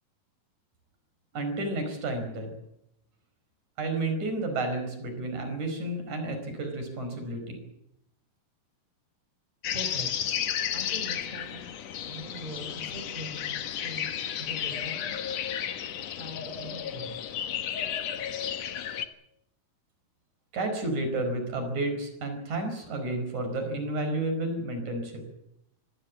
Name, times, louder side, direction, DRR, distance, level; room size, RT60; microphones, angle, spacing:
voice 1, 1.3-2.5 3.8-7.6 20.5-25.2, right 2 dB, 45° right, 5 dB, 6.3 m, -31 dB
sound 1, 9.6-19.1, left 9 dB, 65° left, 1.7 m, -33 dB
voice 2, 9.7-10.1 10.7-11.6 12.1-15.1 16.2-17.2, equal, 10° right, 6 dB, 3.8 m, -42 dB
25.0 x 16.0 x 8.6 m, 0.81 s
omnidirectional pair, 4.7 m